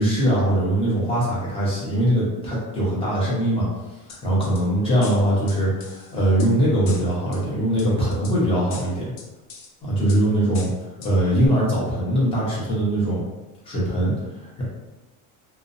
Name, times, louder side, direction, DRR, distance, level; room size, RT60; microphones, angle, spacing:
voice 1, 0.0-3.7 4.2-9.0 9.8-10.7 11.0-13.2 13.6-14.1 14.4-14.6, right 1 dB, 15° left, -7 dB, 0.8 m, -21 dB
sound 1, 4.1-4.6 5.0-6.5 6.9-7.4 7.8-8.4 8.7-9.7 10.1-10.2 10.5-11.1 11.5-11.6, left 4 dB, 60° left, 0.5 m, -40 dB
2.4 x 2.1 x 2.5 m, 1.1 s
cardioid pair, 150°, 37 cm